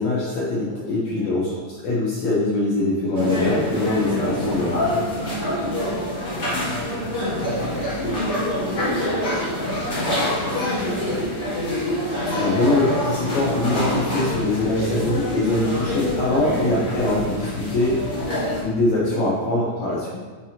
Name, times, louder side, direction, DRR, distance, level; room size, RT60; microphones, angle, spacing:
voice 1, 0.0-5.0 12.3-18.0 18.6-20.1, left 2 dB, 70° left, -6 dB, 2.1 m, -23 dB
voice 2, 0.7-1.3 5.1-11.6 19.6-20.0, equal, 55° right, -9 dB, 3.3 m, -40 dB
sound 1, 3.1-18.6, left 1 dB, 30° left, 2.0 m, -25 dB
9.6 x 4.7 x 2.8 m, 1.4 s
omnidirectional pair, 3.8 m